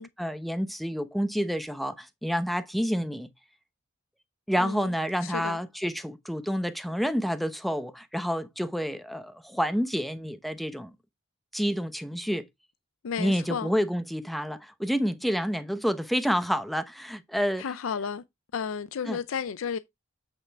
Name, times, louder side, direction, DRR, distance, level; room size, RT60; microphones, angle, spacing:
voice 1, 0.2-3.3 4.5-10.9 11.5-12.5 13.2-17.6 19.1-19.2, equal, ahead, 0.8 m, -29 dB
voice 2, 4.6-4.9 5.2-5.6 13.0-13.7 17.6-18.2 18.5-19.8, left 6 dB, 80° left, 0.5 m, -33 dB
8.2 x 5.6 x 3.5 m
head